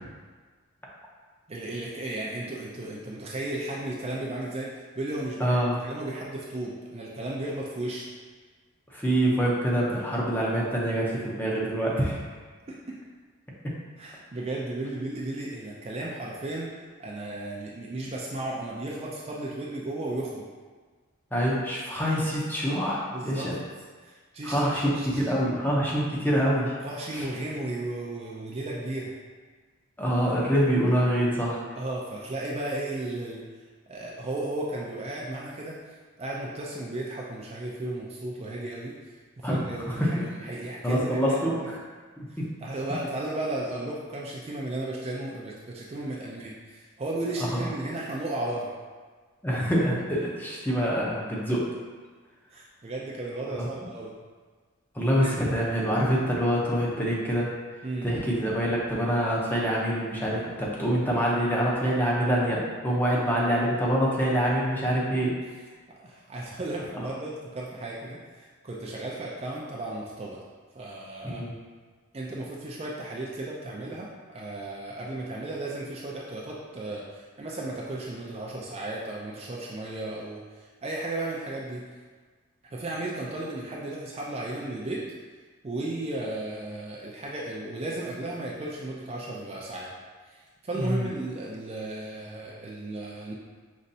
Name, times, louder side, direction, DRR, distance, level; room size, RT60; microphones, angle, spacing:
voice 1, 1.5-8.1 12.7-13.0 14.0-16.7 17.0-20.5 23.1-23.6 24.0-25.2 26.8-29.1 31.8-33.4 33.9-41.4 42.3-48.7 52.5-54.1 55.2-55.3 57.8-58.1 66.0-70.4 70.7-71.4 72.1-81.9 82.7-85.0 85.6-89.9 90.3-93.3, right 2 dB, 30° right, -4 dB, 0.4 m, -35 dB
voice 2, 5.4-5.8 8.9-12.2 13.6-13.7 21.3-23.6 24.4-26.7 27.1-27.3 30.0-31.6 39.4-40.1 40.8-41.8 42.2-42.5 47.5-47.7 49.4-51.7 53.5-53.7 54.9-57.5 58.0-65.4 66.9-67.1 71.2-71.5 90.7-91.0, equal, 10° left, -5 dB, 0.6 m, -25 dB
5.2 x 3.1 x 2.7 m, 1.5 s
head